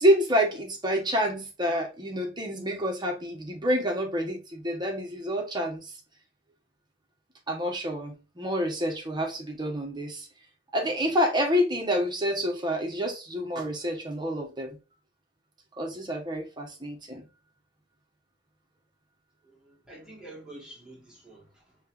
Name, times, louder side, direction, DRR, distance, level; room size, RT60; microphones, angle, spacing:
voice 1, 0.0-5.9 7.5-10.3 10.7-14.8 15.8-17.3, equal, 25° right, 1.1 m, -28 dB
voice 2, 19.4-21.8, right 1 dB, 5° right, 1.6 m, -48 dB
5.4 x 3.0 x 2.5 m
head